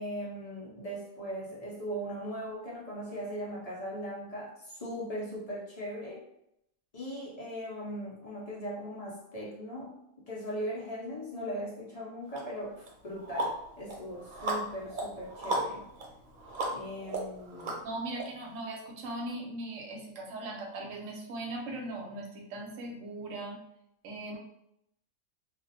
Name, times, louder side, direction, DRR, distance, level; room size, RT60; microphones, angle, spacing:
voice 1, 0.0-6.2 6.9-10.0 10.3-15.8 16.7-17.8, equal, 50° left, -5 dB, 0.4 m, -39 dB
sound 1, 12.3-12.4 12.9-18.2, right 1 dB, 85° right, 1.1 m, -36 dB
voice 2, 17.8-23.6 24.0-24.4, right 2 dB, 70° right, 0 dB, 1.0 m, -39 dB
2.4 x 2.1 x 2.7 m, 0.78 s
omnidirectional pair, 1.5 m